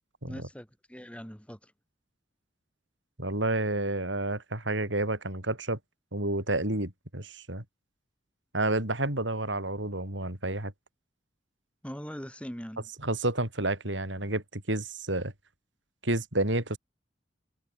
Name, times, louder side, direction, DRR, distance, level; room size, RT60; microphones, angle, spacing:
voice 1, 0.3-1.7 11.8-12.9, equal, 5° left, 6.8 m, -41 dB
voice 2, 3.2-5.8 6.1-7.6 8.5-10.7 13.0-15.3 16.0-16.8, right 2 dB, 80° right, 6.8 m, -30 dB
head